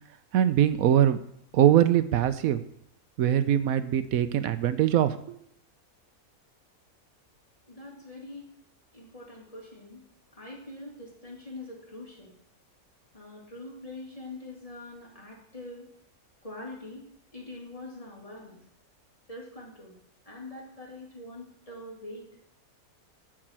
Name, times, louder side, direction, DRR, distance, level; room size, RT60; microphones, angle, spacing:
voice 1, 0.3-1.2 1.5-2.6 3.2-5.2, right 11 dB, 80° right, 12 dB, 1.0 m, -22 dB
voice 2, 7.7-8.5 8.9-12.3 13.1-15.9 16.4-18.6 19.3-20.0 20.2-22.4, left 2 dB, 25° left, -3 dB, 2.9 m, -44 dB
12.5 x 5.0 x 7.4 m, 0.71 s
omnidirectional pair, 1.5 m